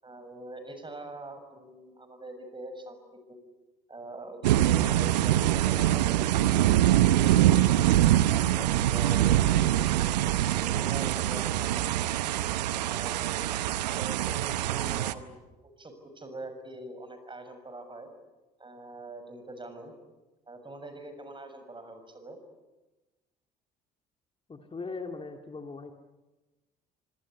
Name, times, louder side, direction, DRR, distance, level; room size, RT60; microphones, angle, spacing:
voice 1, 0.0-3.4 3.9-6.4 6.8-7.6 8.3-12.2 12.8-13.4 13.9-18.1 18.6-19.9 20.5-22.4, right 2 dB, 25° right, 8 dB, 6.5 m, -43 dB
sound 1, 4.4-15.1, right 13 dB, 80° right, 0.9 m, -24 dB
voice 2, 24.5-25.9, left 4 dB, 25° left, 5 dB, 2.3 m, -39 dB
25.5 x 19.5 x 9.7 m, 1.1 s
figure-of-eight pair, 55°, 21 cm